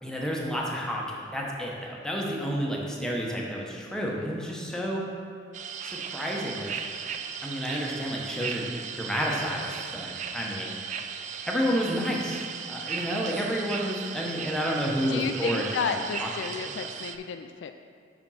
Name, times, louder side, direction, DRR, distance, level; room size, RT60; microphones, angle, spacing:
voice 1, 0.0-5.0 5.8-6.7 7.4-8.7 9.0-10.8 11.5-12.4 12.7-16.9, equal, 5° left, -3 dB, 0.9 m, -30 dB
sound 1, 5.5-17.2, right 7 dB, 40° right, 0.3 m, -36 dB
voice 2, 15.1-17.7, left 6 dB, 80° left, 7 dB, 0.3 m, -32 dB
5.9 x 5.1 x 5.6 m, 2.3 s
head